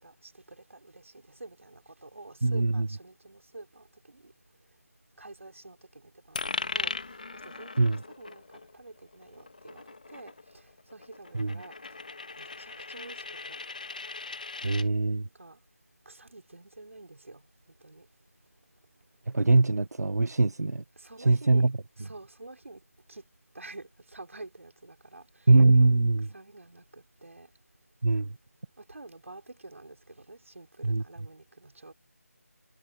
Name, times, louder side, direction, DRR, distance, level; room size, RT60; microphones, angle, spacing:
voice 1, 0.0-4.3 5.2-5.8 6.3-6.9 7.4-7.7 8.2-8.4 8.7-9.8 10.1-10.3 10.9-11.7 12.4-13.6 15.4-15.6 16.0-17.4 17.8-18.0 21.0-21.7 22.0-22.8 23.1-23.2 23.5-25.2 26.3-27.5 28.8-31.9, right 2 dB, 55° right, 5.1 m, -48 dB
voice 2, 2.4-2.9 7.8-8.0 11.3-11.5 14.6-15.3 19.3-20.8 21.2-21.7 25.5-26.3 28.0-28.4 30.8-31.0, right 3 dB, 85° right, 0.9 m, -22 dB
Coin (dropping), 6.3-14.9, left 3 dB, 30° left, 1.7 m, -39 dB
figure-of-eight pair, 180°, 9 cm